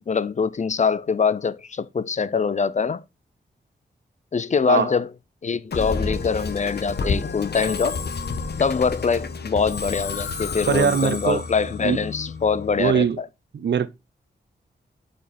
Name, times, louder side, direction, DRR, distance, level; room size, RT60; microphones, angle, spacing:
voice 1, 0.0-3.0 4.3-5.1 5.4-8.0 8.6-13.3, left 5 dB, 40° left, 0.5 m, -23 dB
Musical instrument, 5.7-13.0, left 4 dB, 65° left, 1.2 m, -30 dB
voice 2, 10.7-11.4 11.8-12.0 12.8-13.2 13.5-13.9, right 7 dB, 75° right, 0.8 m, -21 dB
9.0 x 5.3 x 4.3 m
wide cardioid pair, 135°, 18 cm